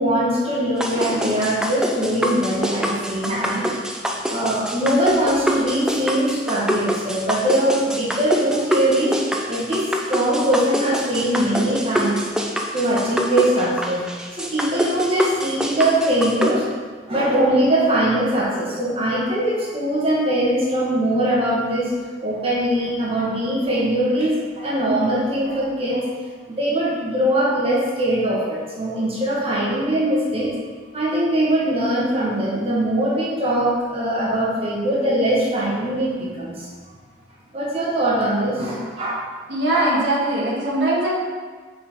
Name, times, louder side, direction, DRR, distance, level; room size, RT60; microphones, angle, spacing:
voice 1, 0.0-3.7 4.3-9.2 9.5-12.2 12.7-14.0 14.3-16.6 17.1-21.9 22.2-26.0 26.5-30.5 30.9-36.7 37.5-39.2 39.7-39.9, right 1 dB, 35° right, -6 dB, 1.3 m, -21 dB
sound 1, 0.8-16.5, equal, 5° right, 0.4 m, -25 dB
voice 2, 39.5-41.1, right 1 dB, 85° right, -6 dB, 1.6 m, -21 dB
5.6 x 4.3 x 4.3 m, 1.5 s
head